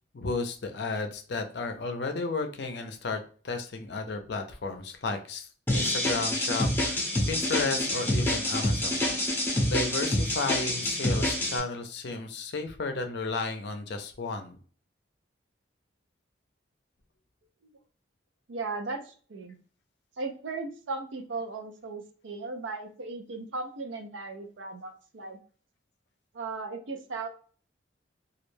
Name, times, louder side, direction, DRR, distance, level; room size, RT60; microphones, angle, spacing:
voice 1, 0.1-9.3 9.7-14.6, left 3 dB, 60° left, 6 dB, 0.5 m, -33 dB
sound 1, 5.7-11.6, left 1 dB, 10° left, 0.6 m, -27 dB
voice 2, 18.5-19.6 20.2-25.4 26.3-27.3, right 3 dB, 80° right, 5 dB, 0.5 m, -37 dB
2.3 x 2.1 x 3.1 m, 0.43 s
head